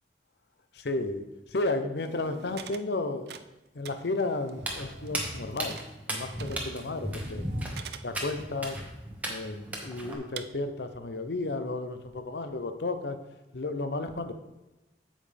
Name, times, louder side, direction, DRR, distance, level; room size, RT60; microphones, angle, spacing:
voice 1, 0.7-3.3 3.7-5.8 6.1-7.4 8.0-8.8 9.3-13.2 13.5-14.3, left 2 dB, 65° left, 9 dB, 0.7 m, -33 dB
sound 1, 2.0-6.1 6.4-8.1 8.7-8.8 9.4-9.5 10.4-10.5, right 6 dB, 60° right, 0.4 m, -46 dB
Walk footsteps, 4.6-10.2, right 1 dB, 10° right, 1.1 m, -36 dB
8.7 x 7.5 x 3.4 m, 1.0 s
head